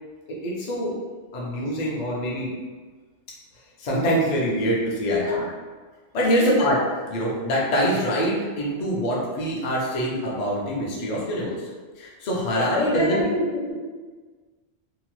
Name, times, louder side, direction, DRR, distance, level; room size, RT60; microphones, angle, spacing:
voice 1, 0.4-0.9 1.3-2.5 3.8-5.2 6.1-6.8 7.1-11.7 12.0-13.2, equal, 50° left, -4 dB, 0.6 m, -24 dB
voice 2, 5.0-5.4 6.4-6.5 12.8-13.7, left 2 dB, 75° left, -5 dB, 1.2 m, -25 dB
2.8 x 2.1 x 3.0 m, 1.4 s
omnidirectional pair, 1.3 m